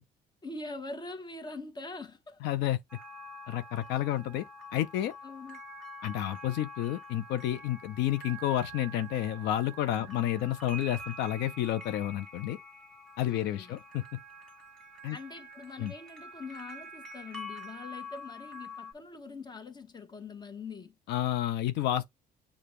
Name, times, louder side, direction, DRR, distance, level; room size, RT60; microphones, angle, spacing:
voice 1, 0.4-2.4 5.2-5.6 10.0-10.3 13.3-13.8 15.1-20.9, left 3 dB, 25° left, 1.0 m, -43 dB
voice 2, 2.4-2.8 3.5-4.4 4.7-5.1 6.0-12.6 13.2-14.2 15.0-15.2 15.8-15.9 21.1-22.1, left 12 dB, 85° left, 0.5 m, -30 dB
sound 1, 2.9-18.9, equal, 5° left, 1.3 m, -46 dB
6.8 x 2.3 x 3.0 m
cardioid pair, 110°, 17 cm